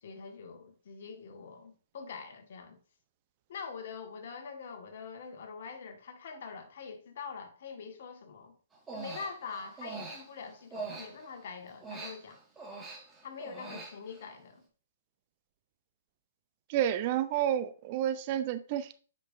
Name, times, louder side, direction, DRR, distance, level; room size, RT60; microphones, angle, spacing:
voice 1, 0.0-2.8 3.5-8.6 8.9-12.4 13.2-14.6, left 5 dB, 60° left, 1.7 m, -44 dB
Human voice, 8.7-11.4 11.8-14.3, right 3 dB, 10° right, 1.9 m, -43 dB
voice 2, 16.7-19.0, right 11 dB, 40° right, 0.6 m, -30 dB
9.4 x 5.3 x 2.7 m
hypercardioid pair, 125°, 0 cm